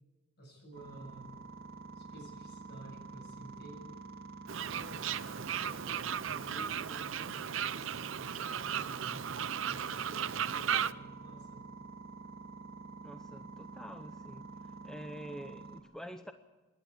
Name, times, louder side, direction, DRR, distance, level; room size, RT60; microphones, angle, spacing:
voice 1, 0.4-1.3 2.0-4.0 4.6-9.2 9.6-11.6, right 1 dB, 55° left, 2 dB, 7.3 m, -52 dB
sound 1, 0.7-15.8, right 4 dB, 50° right, 2.4 m, -49 dB
Fowl, 4.5-10.9, right 8 dB, 70° right, 0.6 m, -35 dB
voice 2, 13.0-14.5 14.8-16.3, equal, 5° left, 7 dB, 0.7 m, -47 dB
27.0 x 11.5 x 8.6 m, 1.2 s
head